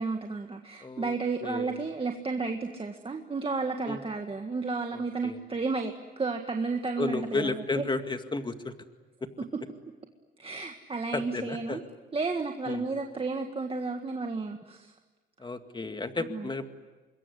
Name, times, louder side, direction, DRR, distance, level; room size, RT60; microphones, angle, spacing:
voice 1, 0.0-7.9 10.4-11.8 12.1-14.9 16.2-16.5, right 4 dB, 30° right, 4 dB, 1.8 m, -32 dB
voice 2, 0.8-1.1 1.4-1.8 3.9-4.0 4.9-5.4 7.0-8.7 9.2-9.3 11.1-11.8 12.7-12.8 15.4-16.7, left 3 dB, 25° left, 8 dB, 2.1 m, -33 dB
26.5 x 22.0 x 10.0 m, 1.3 s
cardioid pair, 90°, 20 cm